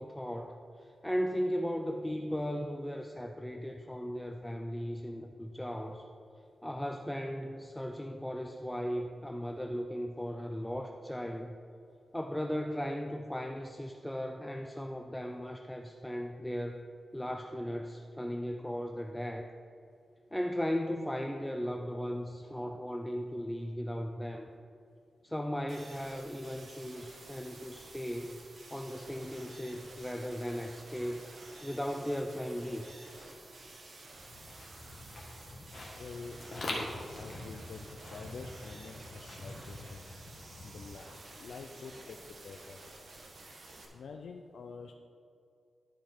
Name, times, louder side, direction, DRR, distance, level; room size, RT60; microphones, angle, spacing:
voice 1, 0.0-6.1 6.6-11.6 12.1-16.8 17.1-19.5 20.3-24.5 25.2-28.4 28.7-31.3 31.6-32.8, equal, 5° left, 3 dB, 0.4 m, -37 dB
sound 1, 25.7-43.9, right 2 dB, 50° right, 1.3 m, -51 dB
sound 2, 34.2-41.5, left 1 dB, 50° left, 1.7 m, -44 dB
voice 2, 35.9-40.0 40.6-41.1 41.4-42.9 43.5-43.6 43.9-44.9, left 4 dB, 80° left, 4 dB, 0.4 m, -47 dB
12.0 x 5.1 x 4.4 m, 2.5 s
wide cardioid pair, 140°, 0 cm